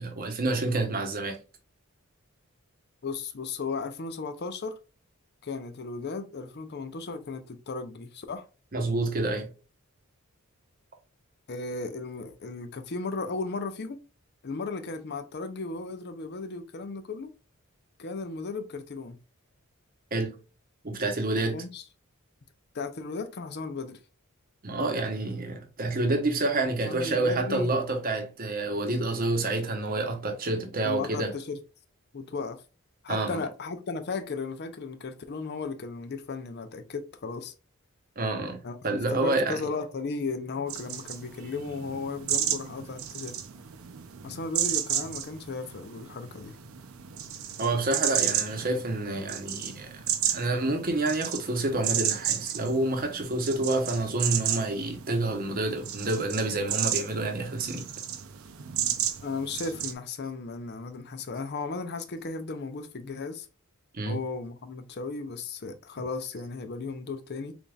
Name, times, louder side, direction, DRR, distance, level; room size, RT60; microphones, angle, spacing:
voice 1, 0.0-1.4 8.7-9.5 20.1-20.3 20.8-21.6 24.6-31.3 33.1-33.5 38.2-39.7 47.6-49.9 50.3-57.8 63.9-64.2, right 2 dB, 40° right, 0.8 m, -28 dB
voice 2, 3.0-4.7 5.4-8.4 11.5-14.0 14.4-17.3 18.0-19.2 21.3-21.8 22.7-24.0 26.8-27.7 30.8-31.6 32.1-32.6 33.0-37.5 38.6-38.8 39.1-43.4 44.2-46.6 59.2-63.5 64.1-67.5, left 4 dB, 50° left, 0.5 m, -35 dB
sound 1, 40.7-59.9, right 10 dB, 70° right, 0.6 m, -33 dB
3.9 x 3.4 x 2.3 m
head